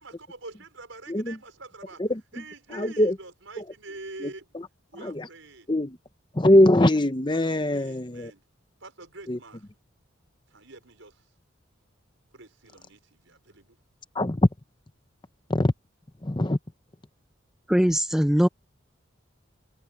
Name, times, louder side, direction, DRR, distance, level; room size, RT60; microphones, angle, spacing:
voice 1, 0.0-2.0 2.3-4.5 4.9-5.7 7.7-8.4 8.8-9.7 10.5-11.3 12.3-13.8, right 3 dB, 75° right, 5.5 m, -45 dB
voice 2, 2.7-3.1 4.2-4.3 5.0-5.3 5.7-6.0 6.3-8.3 9.3-9.4 14.1-14.5 15.5-15.7 16.2-16.6, left 1 dB, 25° left, 0.9 m, -21 dB
voice 3, 17.7-18.5, equal, 5° right, 0.4 m, -21 dB
head